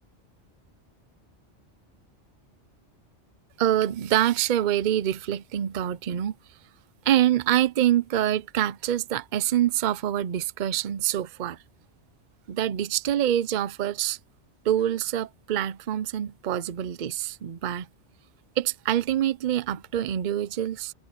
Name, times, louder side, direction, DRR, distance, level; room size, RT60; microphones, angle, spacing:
voice 1, 3.6-6.3 7.1-11.6 12.5-14.2 14.6-17.9 18.6-20.9, right 11 dB, 50° right, 0.7 m, -25 dB
omnidirectional pair, 1.2 m